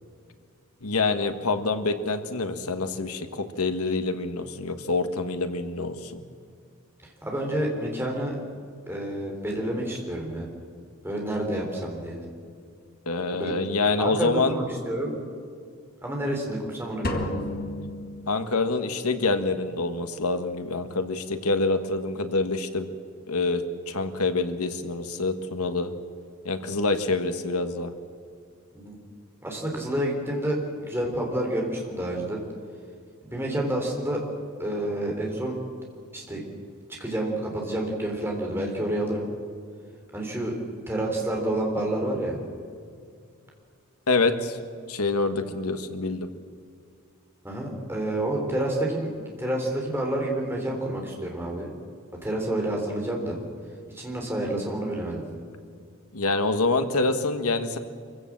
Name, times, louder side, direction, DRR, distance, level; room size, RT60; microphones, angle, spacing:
voice 1, 0.8-6.2 13.1-14.5 18.3-22.9 23.3-25.9 26.4-27.9 44.1-44.6 44.9-46.3 56.1-57.8, left 3 dB, 85° left, 8 dB, 1.6 m, -26 dB
voice 2, 7.2-8.4 8.9-10.5 11.0-12.2 13.3-13.5 14.0-15.1 16.0-17.4 28.7-29.0 29.4-32.4 33.2-34.2 34.6-35.5 36.1-36.4 37.0-39.3 40.1-40.5 40.9-42.4 47.4-49.1 49.4-51.7 52.2-53.4 53.9-55.2, right 1 dB, 10° right, 0 dB, 3.9 m, -29 dB
sound 1, 17.0-18.8, left 1 dB, 40° left, 1.9 m, -32 dB
24.5 x 16.0 x 7.6 m, 2.3 s
head